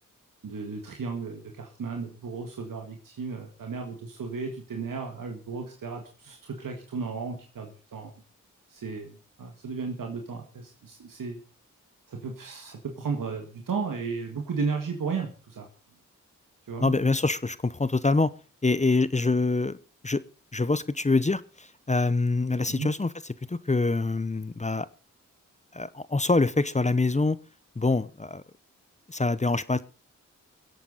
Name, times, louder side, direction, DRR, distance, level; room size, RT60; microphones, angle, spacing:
voice 1, 0.4-8.1 8.7-11.4 12.1-15.7 16.7-16.9 22.7-22.9, right 5 dB, 80° right, 3 dB, 1.8 m, -34 dB
voice 2, 16.8-18.3 18.6-19.8 20.0-20.2 20.5-23.1 23.5-24.9 25.7-27.4 27.8-28.4 29.1-29.8, left 3 dB, 20° left, 17 dB, 0.8 m, -25 dB
23.0 x 8.4 x 4.0 m, 0.35 s
cardioid pair, 40°, 33 cm